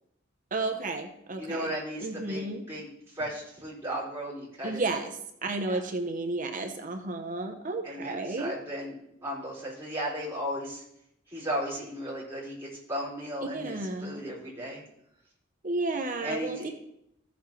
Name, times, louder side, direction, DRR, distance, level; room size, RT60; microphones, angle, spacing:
voice 1, 0.5-1.7 2.0-2.6 4.6-8.5 13.4-14.2 15.6-16.7, right 2 dB, 40° right, 5 dB, 0.8 m, -32 dB
voice 2, 1.4-2.9 3.1-4.8 5.7-5.8 7.8-10.8 11.3-14.8 16.2-16.7, equal, 10° right, -7 dB, 4.6 m, -35 dB
15.0 x 7.2 x 3.2 m, 0.77 s
head